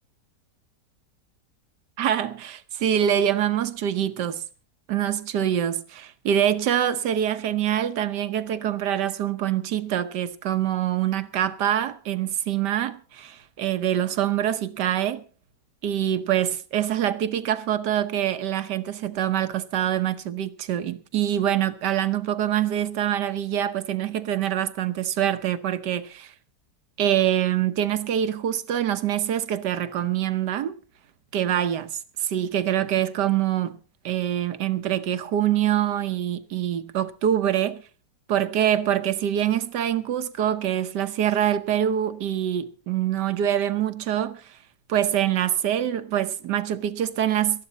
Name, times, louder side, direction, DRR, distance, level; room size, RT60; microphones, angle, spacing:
voice 1, 2.0-4.4 4.9-15.2 15.8-26.3 27.0-30.8 31.3-33.8 34.0-37.8 38.3-44.6 44.9-47.7, right 10 dB, 80° right, 1.6 m, -25 dB
19.0 x 13.5 x 4.1 m
omnidirectional pair, 1.8 m